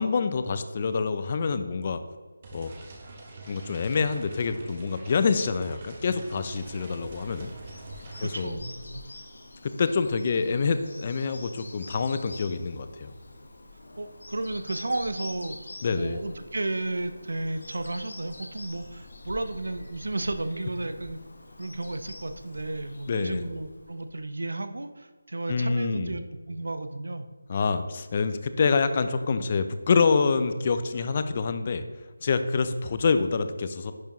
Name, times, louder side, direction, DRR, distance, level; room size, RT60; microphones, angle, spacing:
voice 1, 0.0-2.0 2.5-2.7 3.5-7.5 8.2-8.6 9.6-13.1 15.8-16.2 23.1-23.5 25.5-26.2 27.5-31.8 32.2-33.9, left 4 dB, 25° left, 10 dB, 0.4 m, -26 dB
sound 1, 2.4-8.4, right 2 dB, 25° right, 0.8 m, -44 dB
Bird vocalization bird call bird song, 6.2-24.2, left 2 dB, 70° left, 1.2 m, -46 dB
voice 2, 8.2-9.1 14.0-15.6 15.9-21.2 21.6-27.3, right 2 dB, 80° right, 9 dB, 0.6 m, -33 dB
10.5 x 4.5 x 3.0 m, 1.5 s
figure-of-eight pair, 175°, 0 cm